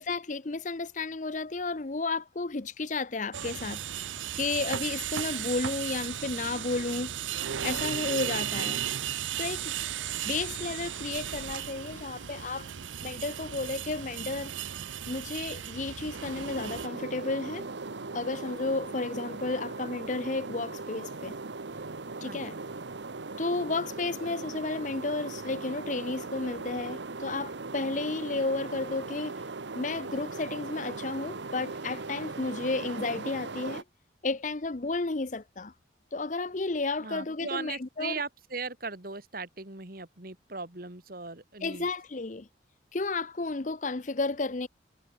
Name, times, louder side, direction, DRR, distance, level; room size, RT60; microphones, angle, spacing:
voice 1, 0.0-3.8 4.4-7.1 7.6-8.8 9.4-9.7 10.2-12.7 13.0-14.5 15.1-17.7 18.1-21.4 22.2-22.6 23.4-29.3 29.7-33.8 34.2-35.7 36.1-38.2 41.6-42.5 42.9-44.7, left 3 dB, 40° left, 0.7 m, -32 dB
sound 1, 3.3-16.9, right 10 dB, 85° right, 0.7 m, -35 dB
sound 2, 12.6-20.2, left 1 dB, 75° left, 6.8 m, -64 dB
sound 3, 16.0-33.8, right 3 dB, 70° right, 1.1 m, -39 dB
voice 2, 22.2-22.6 37.0-41.9, right 4 dB, 50° right, 2.3 m, -38 dB
head